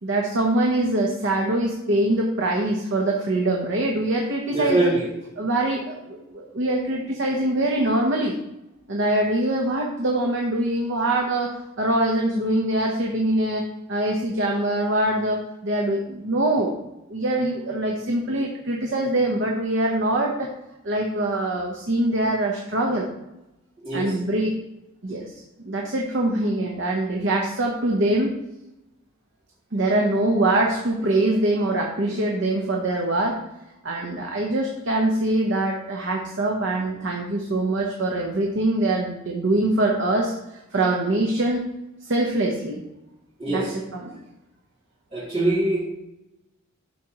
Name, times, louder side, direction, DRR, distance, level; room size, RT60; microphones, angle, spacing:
voice 1, 0.0-4.9 5.4-8.3 8.9-16.7 17.1-20.5 20.8-23.1 23.9-24.6 25.0-25.3 25.6-28.4 29.7-33.4 33.8-40.3 40.7-41.7 42.0-42.8 43.5-44.2, right 1 dB, 60° right, 0 dB, 0.8 m, -23 dB
voice 2, 4.5-5.1 23.8-24.1 43.4-43.7 45.1-45.8, right 2 dB, 25° right, -13 dB, 2.3 m, -23 dB
11.0 x 4.2 x 2.9 m, 0.91 s
head